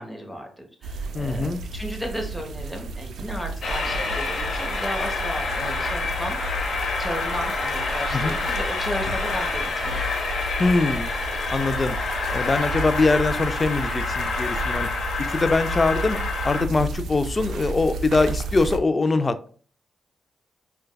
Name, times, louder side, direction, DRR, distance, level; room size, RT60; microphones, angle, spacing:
voice 1, 0.0-6.4 6.7-10.0, equal, ahead, 2 dB, 1.0 m, -34 dB
sound 1, 0.8-18.8, right 2 dB, 80° right, 0.3 m, -33 dB
voice 2, 1.1-1.6 8.1-8.4 10.6-11.1 11.5-12.0 12.3-14.9 15.3-16.2 16.4-19.5, left 3 dB, 35° left, 11 dB, 0.3 m, -22 dB
Train, 3.6-16.6, left 3 dB, 70° left, 0.8 m, -28 dB
4.5 x 2.2 x 2.2 m, 0.44 s
supercardioid pair, 50°, 0 cm